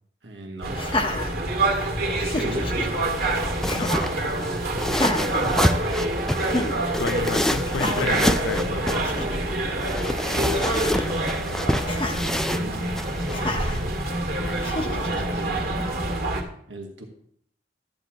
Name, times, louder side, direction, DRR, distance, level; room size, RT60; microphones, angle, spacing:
voice 1, 0.2-0.8 2.2-2.7 10.2-12.3 12.5-12.9 14.6-15.8 16.7-17.0, right 2 dB, 90° right, 1 dB, 1.6 m, -39 dB
sound 1, 0.6-16.4, right 1 dB, 55° right, 1.8 m, -26 dB
Laughter, 0.7-1.8 2.2-2.9 3.7-4.1 4.9-6.1 6.5-6.8 7.6-8.2 8.7-8.8 9.0-9.4 10.5-11.1 11.9-12.2 13.3-13.8 14.6-15.2, left 2 dB, 30° left, 0.9 m, -30 dB
voice 2, 2.0-2.5 3.7-3.9 6.5-6.7 7.0-9.0 14.4-14.8, left 4 dB, 85° left, 13 dB, 0.5 m, -32 dB
sound 2, 2.5-15.1, equal, 5° left, 0.3 m, -29 dB
13.0 x 9.2 x 3.0 m, 0.65 s
head